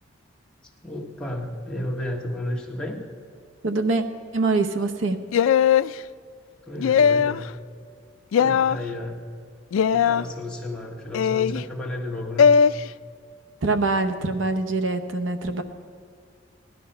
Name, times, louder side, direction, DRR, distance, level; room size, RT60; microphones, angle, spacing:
voice 1, 0.8-3.0 6.6-7.4 8.4-9.2 9.9-12.5, left 1 dB, 5° left, -2 dB, 1.6 m, -32 dB
voice 2, 3.6-4.0 4.3-5.2 13.6-15.6, right 3 dB, 75° right, 8 dB, 0.8 m, -24 dB
sound 1, 5.3-5.9 6.8-7.4 8.3-8.8 9.7-10.2 11.1-11.6 12.4-12.7, left 7 dB, 85° left, 0.3 m, -18 dB
16.5 x 12.0 x 5.6 m, 2.2 s
head